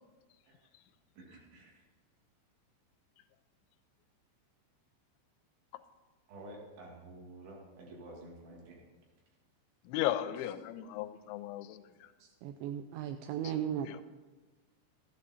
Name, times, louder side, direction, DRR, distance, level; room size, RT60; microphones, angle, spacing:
voice 1, 1.2-1.8 6.3-8.8 12.2-12.3, right 1 dB, 70° right, -2 dB, 4.4 m, -50 dB
voice 2, 9.9-11.8 13.8-14.0, left 13 dB, 85° left, 10 dB, 2.7 m, -35 dB
voice 3, 12.4-14.0, right 9 dB, 85° right, 8 dB, 2.6 m, -36 dB
13.5 x 11.0 x 4.2 m, 1.3 s
omnidirectional pair, 5.6 m